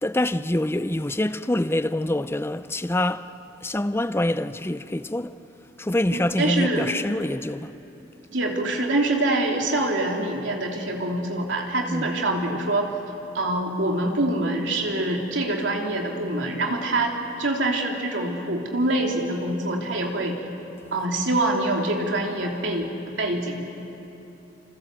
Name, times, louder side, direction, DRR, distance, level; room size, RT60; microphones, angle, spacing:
voice 1, 0.0-3.3 3.6-5.3 5.8-7.7 11.9-12.1, left 1 dB, 15° left, 0.6 m, -25 dB
voice 2, 6.1-6.9 8.3-12.9 13.3-20.4 20.9-22.9 23.2-23.7, right 2 dB, 85° right, 3.2 m, -25 dB
27.5 x 26.5 x 7.7 m
head